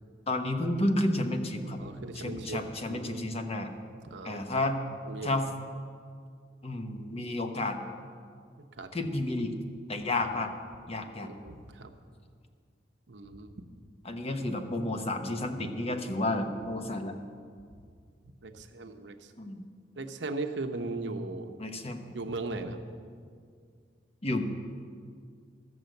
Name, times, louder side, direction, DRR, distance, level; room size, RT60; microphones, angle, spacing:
voice 1, 0.3-1.8 2.1-3.7 4.2-4.8 5.2-5.5 6.6-7.8 8.9-9.6 9.9-10.5 10.9-11.3 14.0-17.1 19.4-19.6 21.6-22.1 24.2-24.5, left 1 dB, 35° left, 5 dB, 0.9 m, -31 dB
voice 2, 1.8-3.2 4.1-4.4 5.1-5.3 8.8-8.9 11.2-12.0 13.1-13.5 18.4-19.3 20.0-21.5 22.1-22.8, right 3 dB, 80° right, 6 dB, 0.8 m, -38 dB
13.0 x 6.2 x 7.8 m, 2.1 s
head